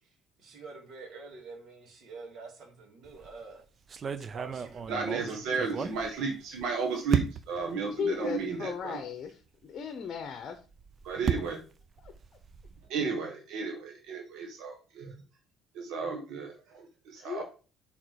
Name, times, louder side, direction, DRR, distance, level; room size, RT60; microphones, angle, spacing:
voice 1, 0.4-3.6 4.2-5.2 5.5-5.9, right 4 dB, 55° right, 2.4 m, -47 dB
sound 1, 3.0-3.4 3.9-6.6 7.1-7.7 8.4-8.5 8.8-8.9 10.6-12.9, right 7 dB, 35° right, 0.5 m, -34 dB
voice 2, 4.9-9.0 11.0-11.6 12.9-15.1 15.7-17.4, right 4 dB, 70° right, 1.6 m, -33 dB
voice 3, 7.8-10.6 12.0-12.1 17.2-17.4, left 7 dB, 45° left, 0.9 m, -36 dB
6.5 x 3.6 x 4.7 m
cardioid pair, 125°, 0 cm